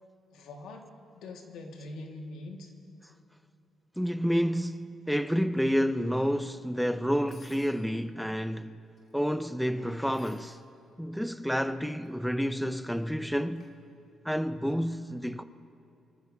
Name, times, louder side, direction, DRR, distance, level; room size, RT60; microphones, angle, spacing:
voice 1, 0.3-0.9 1.1-2.7, left 2 dB, 85° left, 1.8 m, -43 dB
voice 2, 4.0-8.8 9.1-10.6 11.0-13.7 14.2-15.4, equal, ahead, 0.5 m, -29 dB
sound 1, 7.3-7.9 8.7-9.1 10.1-10.5 11.7-12.1 13.6-13.8, left 3 dB, 50° left, 3.0 m, -57 dB
24.5 x 14.5 x 2.7 m
cardioid pair, 90°, 0 cm